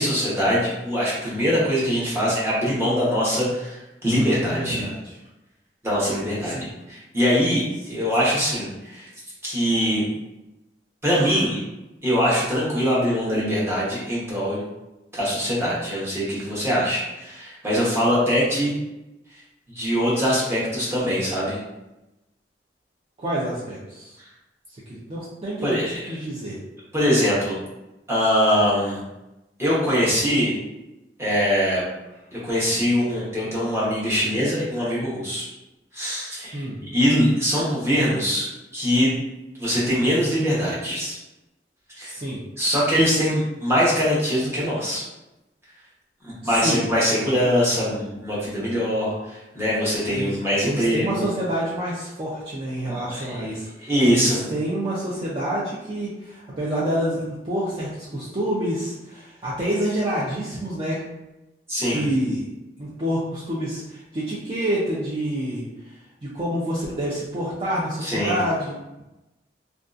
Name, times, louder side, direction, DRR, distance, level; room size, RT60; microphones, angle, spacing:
voice 1, 0.0-4.8 5.8-6.6 6.9-9.1 9.4-10.1 11.0-11.6 12.0-14.6 15.1-18.7 19.7-21.6 25.6-26.0 26.9-27.6 28.1-29.0 29.6-30.5 31.2-31.8 32.3-35.5 35.9-39.1 39.6-41.2 42.0-42.1 42.6-45.0 46.2-51.3 52.9-53.4 53.8-54.4 61.7-62.0 68.0-68.4, equal, 15° right, -8 dB, 0.9 m, -22 dB
voice 2, 4.6-5.1 6.4-6.7 7.9-8.0 23.2-24.2 24.9-25.8 26.1-26.6 36.5-36.8 42.0-42.4 46.4-46.9 50.1-50.4 50.6-61.0 61.9-62.5 62.8-69.0, right 1 dB, 35° right, -8 dB, 0.5 m, -28 dB
2.6 x 2.3 x 2.4 m, 0.98 s
head